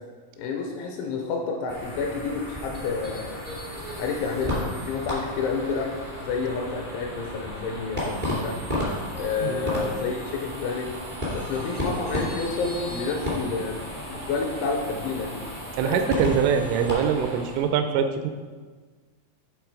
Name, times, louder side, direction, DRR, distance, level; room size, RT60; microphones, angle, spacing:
voice 1, 0.4-3.4 4.0-8.6 9.1-10.9 11.3-13.8 14.1-15.4 15.8-16.1, left 4 dB, 85° left, 2 dB, 2.8 m, -29 dB
sound 1, 1.7-17.7, left 1 dB, 45° right, 0.6 m, -33 dB
voice 2, 15.8-18.3, right 7 dB, 85° right, 7 dB, 2.9 m, -23 dB
11.0 x 3.7 x 4.8 m, 1.4 s
omnidirectional pair, 5.8 m